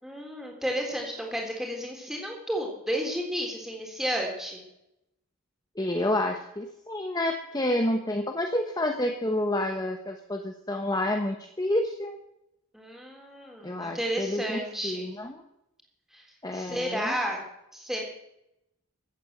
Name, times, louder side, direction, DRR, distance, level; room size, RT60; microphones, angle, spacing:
voice 1, 0.0-4.6 12.7-15.1 16.1-16.2 16.5-17.4 17.7-18.0, equal, ahead, 0 dB, 3.5 m, -32 dB
voice 2, 5.8-12.2 13.6-15.3 16.4-17.2, left 1 dB, 20° left, 5 dB, 1.0 m, -29 dB
15.5 x 8.9 x 7.8 m, 0.83 s
head